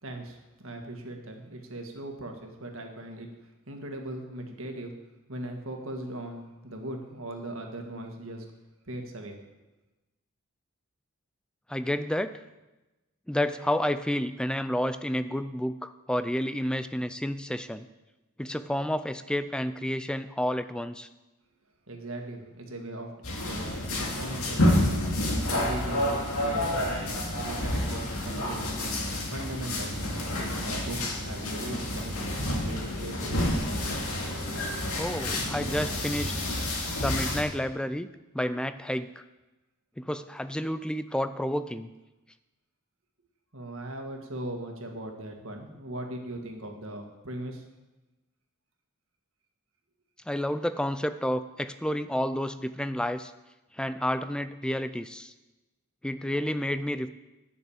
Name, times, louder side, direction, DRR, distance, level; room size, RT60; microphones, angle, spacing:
voice 1, 0.0-4.9 5.3-8.5 8.9-9.4 21.9-25.1 25.5-29.0 29.3-33.4 43.5-47.7, right 1 dB, 65° right, 3 dB, 1.8 m, -39 dB
voice 2, 11.7-12.4 13.3-17.9 18.4-21.1 35.0-36.3 37.0-38.1 38.3-39.2 40.0-41.9 50.3-53.3 53.7-55.3 56.0-57.1, left 1 dB, 5° left, 12 dB, 0.4 m, -30 dB
sound 1, 23.2-37.4, left 1 dB, 75° left, 2.3 m, -29 dB
10.0 x 6.7 x 8.7 m, 1.1 s
head